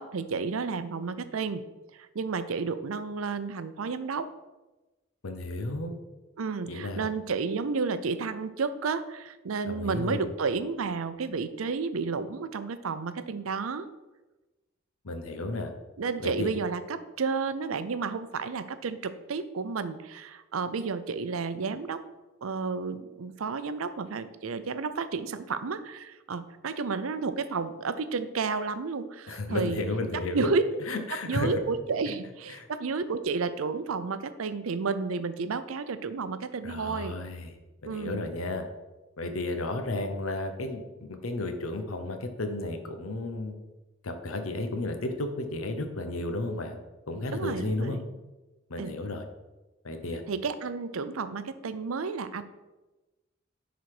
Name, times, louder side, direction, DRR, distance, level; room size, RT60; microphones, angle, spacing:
voice 1, 0.0-1.6 1.9-4.3 6.4-13.9 16.0-22.0 22.4-29.8 30.3-30.6 31.3-37.2 37.8-38.3 47.3-48.0 48.8-49.0 50.3-52.4, right 4 dB, 85° right, 12 dB, 0.6 m, -31 dB
voice 2, 5.2-5.9 6.7-7.1 9.6-10.3 15.0-15.7 16.2-16.5 29.3-30.4 30.9-31.6 32.5-32.7 36.6-37.6 37.8-38.6 39.2-43.5 44.0-46.8 47.1-48.0 48.7-49.2 49.8-50.2, left 2 dB, 90° left, 6 dB, 0.9 m, -33 dB
10.0 x 4.1 x 4.9 m, 1.1 s
head